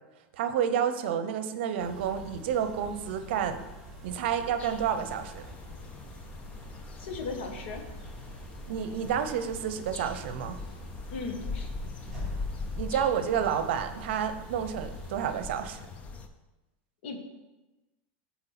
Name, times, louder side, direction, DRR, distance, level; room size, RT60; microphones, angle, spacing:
voice 1, 0.4-3.6 4.0-5.5 8.7-10.6 12.8-15.8, right 8 dB, 65° right, 9 dB, 0.7 m, -30 dB
sound 1, 1.8-15.4, right 2 dB, 5° left, 2.2 m, -46 dB
sound 2, 4.6-16.3, left 3 dB, 20° left, 0.5 m, -41 dB
voice 2, 7.0-7.8 11.1-11.7 17.0-17.2, left 4 dB, 65° left, 4 dB, 1.5 m, -36 dB
8.0 x 4.3 x 5.8 m, 1.1 s
supercardioid pair, 160°, 6 cm